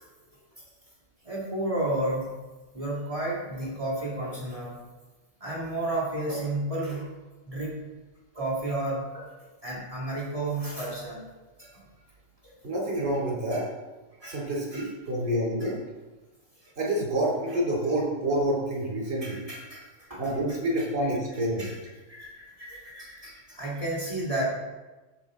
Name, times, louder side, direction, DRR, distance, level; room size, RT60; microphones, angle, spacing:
voice 1, 1.2-2.3 2.7-4.8 5.4-7.1 7.5-7.7 8.3-9.3 9.6-11.2 11.6-11.8 12.4-12.5 13.5-13.6 14.2-14.4 14.7-14.9 15.6-15.7 16.6-16.7 19.2-20.9 21.6-21.8 22.1-24.4, right 1 dB, 30° right, -5 dB, 2.1 m, -32 dB
voice 2, 12.6-13.6 14.2-15.8 16.8-19.4 20.2-21.7, right 1 dB, 50° right, -4 dB, 3.2 m, -28 dB
13.5 x 5.2 x 3.7 m, 1.2 s
omnidirectional pair, 1.3 m